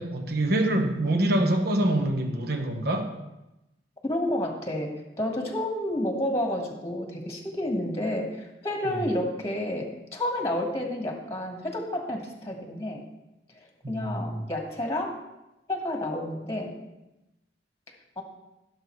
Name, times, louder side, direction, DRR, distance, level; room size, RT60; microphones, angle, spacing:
voice 1, 0.0-3.1 8.8-9.1 13.8-14.4, right 1 dB, 65° right, 5 dB, 1.1 m, -25 dB
voice 2, 4.0-4.9 5.2-13.0 13.5-15.1 15.7-16.7 18.2-18.3, left 1 dB, 15° left, 2 dB, 1.5 m, -30 dB
15.5 x 6.7 x 3.2 m, 0.96 s
head